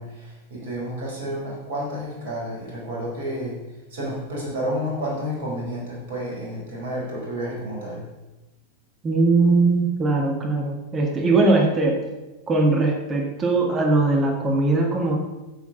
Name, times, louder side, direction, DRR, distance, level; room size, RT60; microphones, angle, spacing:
voice 1, 0.0-3.6 3.9-8.0, equal, 55° right, -2 dB, 4.9 m, -30 dB
voice 2, 9.0-12.0 12.5-15.2, right 3 dB, 25° right, 1 dB, 2.0 m, -20 dB
11.0 x 8.3 x 5.4 m, 1.1 s
figure-of-eight pair, 90°, 0 cm